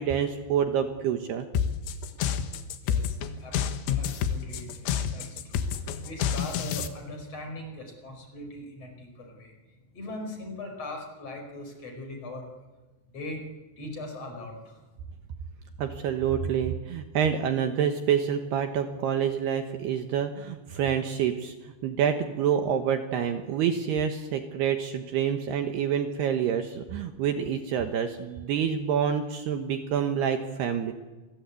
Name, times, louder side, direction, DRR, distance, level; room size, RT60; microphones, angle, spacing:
voice 1, 0.0-1.5 15.8-30.9, right 8 dB, 70° right, 6 dB, 3.0 m, -27 dB
sound 1, 1.6-6.9, left 8 dB, 75° left, 3.8 m, -28 dB
voice 2, 2.8-3.6 3.9-12.5 13.1-13.4 13.8-14.8, left 2 dB, 35° left, 3 dB, 5.7 m, -40 dB
28.0 x 22.0 x 8.4 m, 1.2 s
omnidirectional pair, 5.5 m